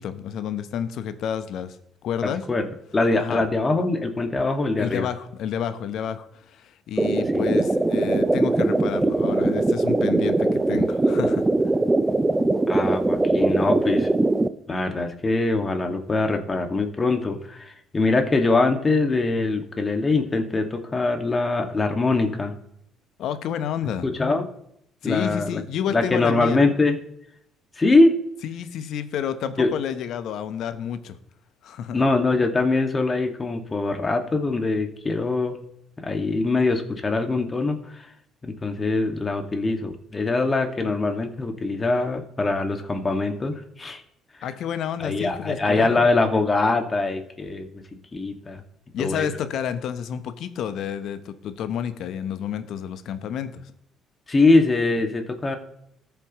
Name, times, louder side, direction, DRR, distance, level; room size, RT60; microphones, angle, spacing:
voice 1, 0.0-1.8 2.0-2.4 3.2-3.5 4.8-11.4 23.2-24.1 25.0-26.6 28.4-31.2 31.6-32.0 44.4-46.0 48.9-53.6, left 8 dB, 65° left, 11 dB, 1.0 m, -30 dB
voice 2, 2.2-2.7 2.9-5.1 7.3-7.4 12.7-14.1 14.7-22.5 24.0-24.5 25.0-25.6 25.9-27.0 27.8-28.1 29.6-29.7 31.9-35.6 36.0-38.1 38.4-44.0 45.0-47.8 48.1-48.6 49.0-49.3 54.3-55.6, left 3 dB, 30° left, 4 dB, 2.0 m, -23 dB
sound 1, 7.0-14.5, right 2 dB, 15° right, 0.6 m, -21 dB
18.5 x 7.1 x 3.1 m, 0.76 s
hypercardioid pair, 55°, 0 cm